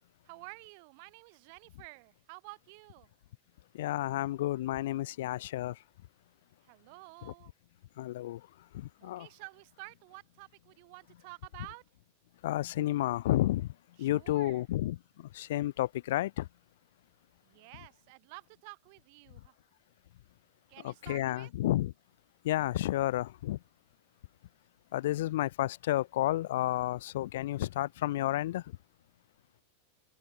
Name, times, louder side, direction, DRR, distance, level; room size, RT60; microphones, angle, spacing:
voice 1, 0.2-3.1 6.6-7.5 9.0-11.8 14.0-14.7 17.4-19.5 20.7-21.5, right 33 dB, 45° right, 3.1 m, -51 dB
voice 2, 3.8-5.7 8.0-8.4 9.1-9.3 12.4-13.6 14.0-15.0 15.4-16.3 21.1-21.9 22.5-23.6 24.9-28.6, left 15 dB, 55° left, 0.3 m, -31 dB
open air
figure-of-eight pair, 90°, 0 cm